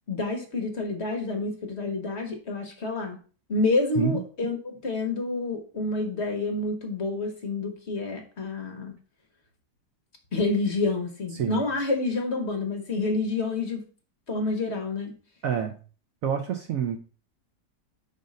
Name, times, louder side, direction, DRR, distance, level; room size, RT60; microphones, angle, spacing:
voice 1, 0.1-3.2 3.5-9.0 10.3-13.8 14.3-15.1, left 3 dB, 45° left, 3 dB, 1.1 m, -28 dB
voice 2, 11.3-11.6 15.4-15.8 16.2-17.0, right 8 dB, 70° right, 6 dB, 0.9 m, -27 dB
5.2 x 4.0 x 5.1 m, 0.39 s
omnidirectional pair, 1.8 m